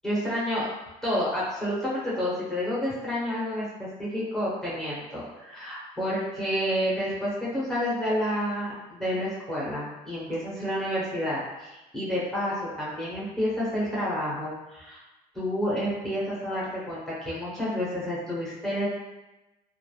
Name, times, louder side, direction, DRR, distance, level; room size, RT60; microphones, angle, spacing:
voice 1, 0.0-0.7 1.0-15.0 15.3-18.9, equal, 5° left, -9 dB, 0.8 m, -29 dB
2.3 x 2.0 x 3.1 m, 1.0 s
cardioid pair, 110°, 17 cm